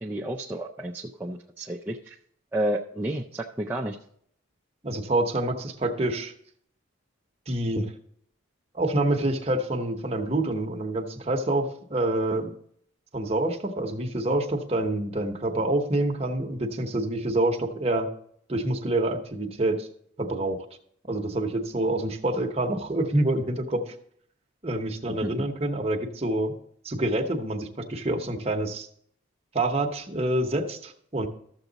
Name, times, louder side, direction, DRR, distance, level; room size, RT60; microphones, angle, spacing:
voice 1, 0.0-2.2 2.5-4.0 25.2-25.5, right 1 dB, 10° right, -2 dB, 0.4 m, -31 dB
voice 2, 4.8-6.3 7.5-7.9 8.7-12.5 13.1-18.1 18.5-19.9 20.2-20.6 21.1-23.9 24.6-26.5 26.8-28.9 29.5-31.3, right 1 dB, 30° right, 3 dB, 0.9 m, -27 dB
13.0 x 7.1 x 4.0 m, 0.67 s
head